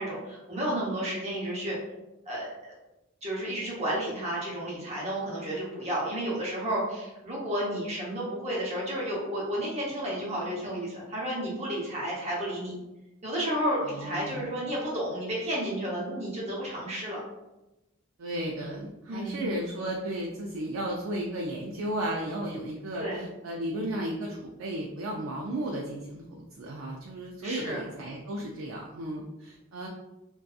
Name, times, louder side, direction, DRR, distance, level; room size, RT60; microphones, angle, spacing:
voice 1, 0.0-1.8 2.3-2.5 3.2-12.7 13.2-17.2 19.1-19.5 23.0-23.3 27.4-27.9, right 1 dB, 30° right, -5 dB, 0.8 m, -32 dB
voice 2, 13.8-14.5 18.2-29.9, right 1 dB, 85° right, -2 dB, 0.4 m, -34 dB
2.6 x 2.3 x 2.3 m, 0.96 s
head